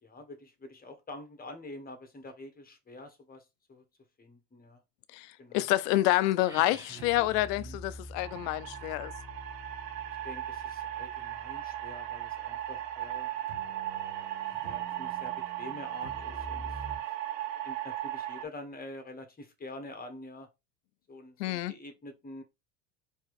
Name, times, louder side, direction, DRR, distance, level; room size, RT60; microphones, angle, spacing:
voice 1, 0.0-3.8 4.2-4.8 5.4-5.7 10.2-13.4 14.6-17.0 17.6-20.5 21.1-22.4, left 2 dB, 15° left, 1.4 m, -46 dB
voice 2, 5.1-9.1 21.4-21.7, left 16 dB, 75° left, 0.6 m, -28 dB
sound 1, 6.3-7.9, right 3 dB, 5° right, 0.6 m, -49 dB
sound 2, 6.4-6.7 7.0-13.2 13.5-17.0, equal, 60° right, 1.7 m, -48 dB
sound 3, 8.2-18.4, right 12 dB, 80° right, 0.8 m, -37 dB
4.6 x 3.1 x 3.1 m
supercardioid pair, 95°, 50 cm